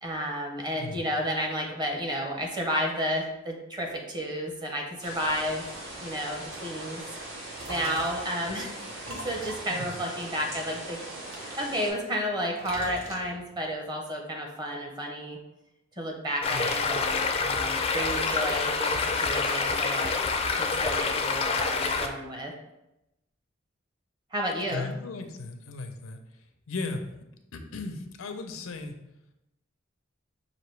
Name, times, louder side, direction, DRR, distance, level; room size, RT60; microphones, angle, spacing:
voice 1, 0.0-5.7 6.0-7.0 7.7-8.8 9.1-11.0 11.6-15.4 16.0-20.2 20.6-22.5 24.3-24.9, equal, 20° right, 1 dB, 0.7 m, -32 dB
sound 1, 5.0-11.9, right 1 dB, 70° right, 1.6 m, -40 dB
sound 2, 7.2-8.4 9.0-10.8 11.3-12.3 12.6-13.7, right 1 dB, 85° right, 1.0 m, -42 dB
Stream, 16.4-22.1, left 4 dB, 30° left, 0.3 m, -27 dB
voice 2, 24.7-26.2 26.7-27.0 27.5-28.9, left 3 dB, 90° left, 6 dB, 0.5 m, -36 dB
5.8 x 2.6 x 3.2 m, 0.90 s
head